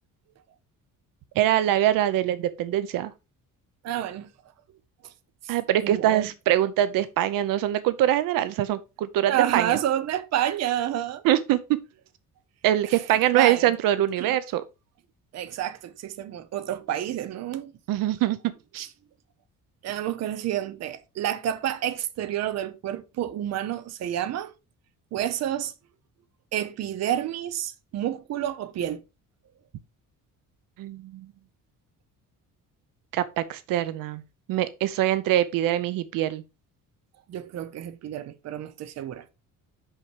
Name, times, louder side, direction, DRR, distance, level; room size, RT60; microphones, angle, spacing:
voice 1, 1.4-3.1 5.5-9.8 11.2-11.8 12.6-14.6 17.9-18.4 18.7-18.9 30.8-31.3 33.1-34.2 34.5-36.4, right 12 dB, 80° right, 0.7 m, -23 dB
voice 2, 3.8-4.3 5.4-5.5 5.8-6.3 9.3-11.2 13.3-13.7 14.2-14.4 15.3-17.7 19.8-24.5 25.1-25.7 26.5-29.0 37.3-39.2, right 11 dB, 50° right, 0.8 m, -29 dB
5.9 x 5.6 x 4.9 m
cardioid pair, 175°, 33 cm